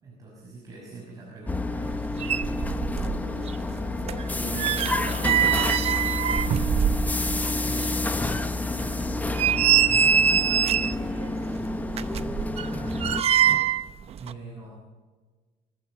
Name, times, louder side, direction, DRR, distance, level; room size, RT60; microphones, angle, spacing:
voice 1, 0.0-2.0 7.4-8.0 8.7-9.3 12.7-13.6 14.1-14.8, right 3 dB, 25° right, -3 dB, 5.9 m, -43 dB
sound 1, 1.5-13.2, left 2 dB, 10° left, 1.0 m, -29 dB
sound 2, 1.9-2.0 2.2-3.2 3.5-7.4 7.8-7.9 8.4-8.5 9.1-11.0 11.9-13.9 14.2-14.3, right 9 dB, 45° right, 0.8 m, -23 dB
voice 2, 2.9-5.4 10.0-11.3, right 3 dB, 65° right, 3 dB, 4.5 m, -41 dB
25.0 x 14.5 x 7.5 m, 1.4 s
cardioid pair, 160°, 15 cm